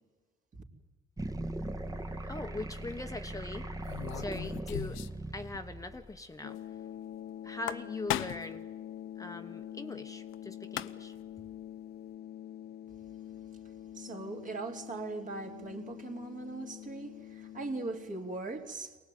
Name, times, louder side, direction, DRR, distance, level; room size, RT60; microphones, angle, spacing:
sound 1, 1.2-6.2, right 1 dB, 15° right, 1.5 m, -39 dB
sound 2, 2.0-2.3 3.8-5.3 5.5-5.6 5.9-6.0 7.5-8.6 10.3-10.4 10.6-11.2, left 14 dB, 90° left, 0.7 m, -37 dB
voice 1, 2.3-3.7 4.1-5.0 5.3-6.6 7.4-8.7 9.2-11.1, left 2 dB, 15° left, 6 dB, 1.2 m, -41 dB
sound 3, 6.4-18.4, left 11 dB, 55° left, 0.7 m, -45 dB
voice 2, 13.9-19.0, right 3 dB, 40° right, 3 dB, 3.1 m, -40 dB
24.0 x 19.0 x 9.3 m, 1.4 s
cardioid pair, 90°, 20 cm